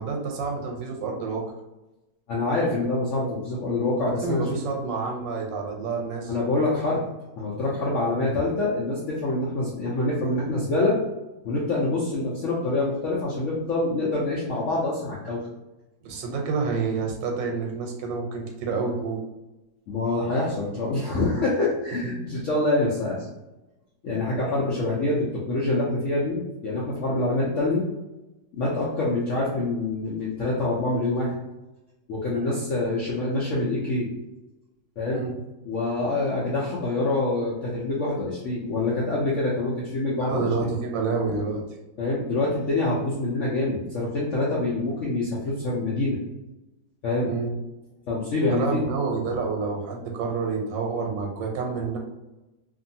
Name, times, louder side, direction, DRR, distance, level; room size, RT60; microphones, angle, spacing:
voice 1, 0.0-1.4 4.2-6.3 8.1-8.3 16.0-19.2 22.0-22.2 32.3-32.6 35.1-35.3 40.2-41.6 47.2-47.5 48.5-52.0, right 4 dB, 90° right, 1 dB, 1.3 m, -28 dB
voice 2, 2.3-4.6 6.3-7.0 7.4-11.0 11.4-15.4 19.9-23.3 24.0-27.8 28.6-31.3 32.1-34.1 35.0-35.2 35.6-40.5 42.0-46.2 47.0-47.3 48.1-48.8, left 2 dB, 70° left, -5 dB, 0.7 m, -26 dB
2.6 x 2.6 x 2.6 m, 1.0 s
omnidirectional pair, 2.0 m